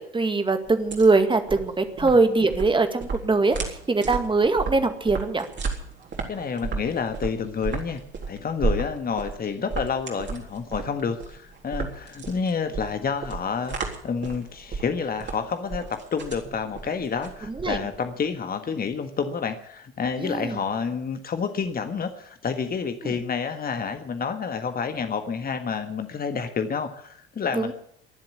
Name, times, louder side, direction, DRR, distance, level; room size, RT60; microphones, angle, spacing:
voice 1, 0.0-3.6 3.9-5.5 17.6-17.8 20.2-20.5 27.6-27.7, right 3 dB, 15° right, 8 dB, 2.1 m, -22 dB
sound 1, 0.6-18.1, right 4 dB, 40° right, 3.8 m, -34 dB
voice 2, 6.3-8.0 8.3-13.8 14.0-27.7, left 6 dB, 30° left, 8 dB, 1.7 m, -29 dB
23.0 x 7.7 x 8.2 m, 0.66 s
figure-of-eight pair, 60°, 30 cm